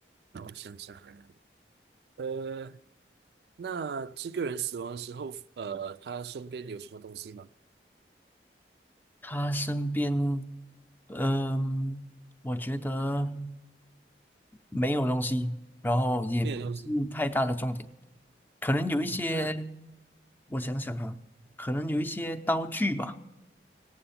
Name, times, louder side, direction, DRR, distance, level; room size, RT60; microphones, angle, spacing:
voice 1, 0.3-1.3 2.2-2.8 3.6-7.5 16.4-16.9 19.0-19.6, right 6 dB, 65° right, 0.3 m, -37 dB
voice 2, 9.2-10.5 11.1-12.1 12.4-13.6 14.7-15.5 15.8-17.9 18.6-19.7 20.5-21.2 21.6-23.2, equal, 10° left, 0.5 m, -29 dB
18.0 x 7.8 x 5.6 m
head